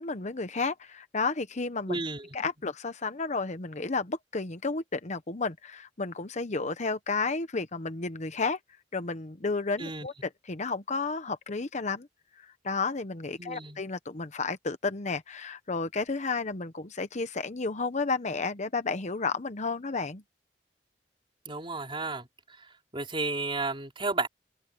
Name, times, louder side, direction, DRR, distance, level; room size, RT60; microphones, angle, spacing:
voice 1, 0.0-2.0 2.3-8.6 8.9-12.1 12.4-20.2, left 4 dB, 40° left, 1.0 m, -32 dB
voice 2, 1.9-2.2 9.8-10.1 13.4-13.8 21.5-22.3 22.9-24.3, right 3 dB, 30° right, 4.4 m, -32 dB
open air
head